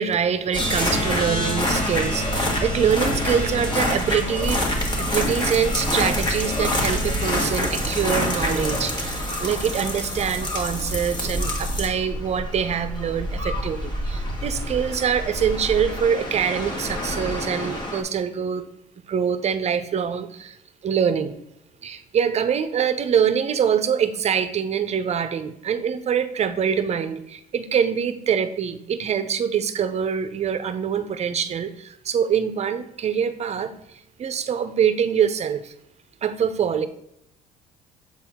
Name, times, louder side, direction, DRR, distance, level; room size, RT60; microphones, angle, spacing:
voice 1, 0.0-4.6 5.0-18.7 19.1-20.5 20.8-21.3 21.8-33.7 34.2-35.7 36.2-36.9, right 7 dB, 40° right, 11 dB, 0.6 m, -24 dB
sound 1, 0.5-18.0, left 1 dB, 25° left, 1.4 m, -26 dB
7.5 x 4.4 x 3.6 m, 0.79 s
cardioid pair, 110°, 17 cm